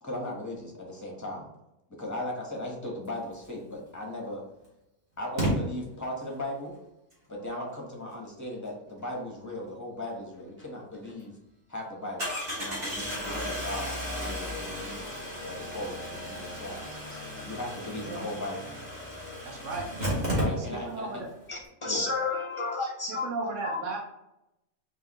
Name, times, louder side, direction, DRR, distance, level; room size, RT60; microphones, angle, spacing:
voice 1, 0.0-1.5 2.0-4.4 5.2-6.7 7.3-11.3 11.7-18.8 20.3-21.2 21.8-22.1, left 1 dB, 15° left, -1 dB, 1.0 m, -37 dB
Engine starting, 3.9-4.0 5.4-5.5 10.6-10.7 11.0-11.1 12.2-21.0 21.3-21.4 21.6-21.7, equal, 30° right, 1.7 m, -34 dB
voice 2, 17.8-18.2 19.4-19.9 20.3-21.3 23.1-24.0, right 3 dB, 70° right, 1 dB, 1.2 m, -36 dB
voice 3, 21.5-23.3 23.6-24.0, left 3 dB, 45° left, 0 dB, 0.4 m, -31 dB
4.8 x 2.9 x 3.0 m, 0.88 s
omnidirectional pair, 1.4 m